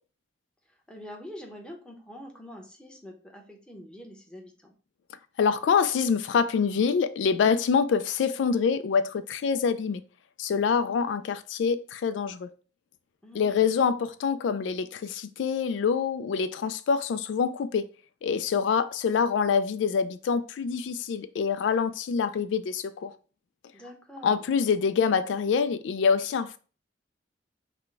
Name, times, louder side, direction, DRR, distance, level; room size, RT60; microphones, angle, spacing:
voice 1, 0.9-4.7 13.2-13.8 23.7-24.5, equal, 5° left, 0.8 m, -45 dB
voice 2, 5.4-10.0 10.4-12.5 13.3-17.9 18.2-23.1 24.2-26.6, left 6 dB, 80° left, 0.3 m, -25 dB
6.0 x 2.2 x 3.3 m
head